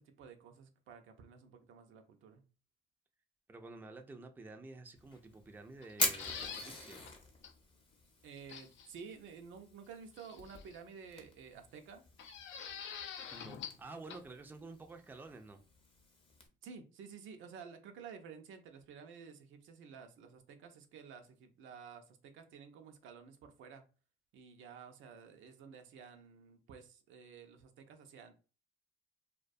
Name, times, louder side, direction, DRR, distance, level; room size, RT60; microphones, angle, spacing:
voice 1, 0.0-2.4 8.2-12.0 16.6-23.8 24.3-28.3, right 6 dB, 80° right, 6 dB, 0.5 m, -52 dB
voice 2, 3.5-7.1 13.3-15.6, right 3 dB, 10° right, 6 dB, 0.3 m, -50 dB
Fire, 4.9-16.5, left 2 dB, 25° left, 0.6 m, -44 dB
sound 1, 5.8-6.7 7.1-7.2 7.4-7.5 8.5-8.9 10.2-10.8 12.2-13.8 14.1-14.2, left 7 dB, 70° left, 0.4 m, -45 dB
2.3 x 2.2 x 2.5 m, 0.35 s
cardioid pair, 90°, 20 cm